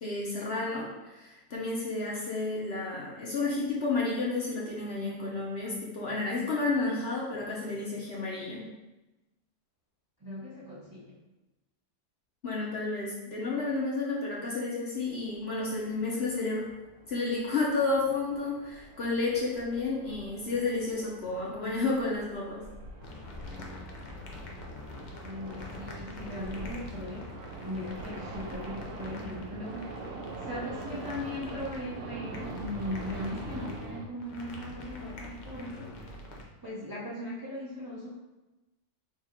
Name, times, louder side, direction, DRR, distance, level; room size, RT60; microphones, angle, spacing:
voice 1, 0.0-8.6 12.4-16.7 17.1-22.6, left 3 dB, 55° left, -5 dB, 0.8 m, -31 dB
voice 2, 10.2-11.2 24.5-24.6 25.2-29.9 30.4-36.0 36.6-38.1, left 1 dB, 25° right, -8 dB, 0.5 m, -39 dB
sound 1, 15.0-34.1, right 3 dB, 70° right, 0.9 m, -44 dB
sound 2, 23.0-36.4, left 2 dB, 85° left, 0.4 m, -44 dB
3.5 x 2.4 x 4.3 m, 1.0 s
omnidirectional pair, 1.6 m